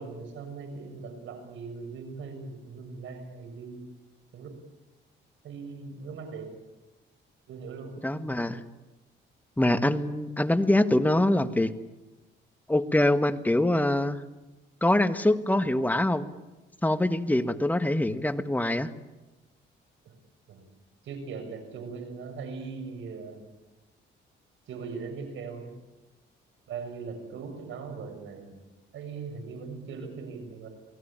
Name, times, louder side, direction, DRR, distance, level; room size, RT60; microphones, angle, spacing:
voice 1, 0.0-3.8 4.3-4.6 5.4-6.5 7.5-8.0 20.0-20.1 20.5-20.6 21.0-23.4 24.7-25.7 26.7-28.6 28.9-30.7, right 5 dB, 75° right, 6 dB, 6.8 m, -40 dB
voice 2, 8.0-8.6 9.6-11.7 12.7-14.2 14.8-16.3 16.8-18.9, left 1 dB, 10° left, 9 dB, 1.6 m, -24 dB
28.5 x 19.0 x 8.9 m, 1.1 s
cardioid pair, 90°, 20 cm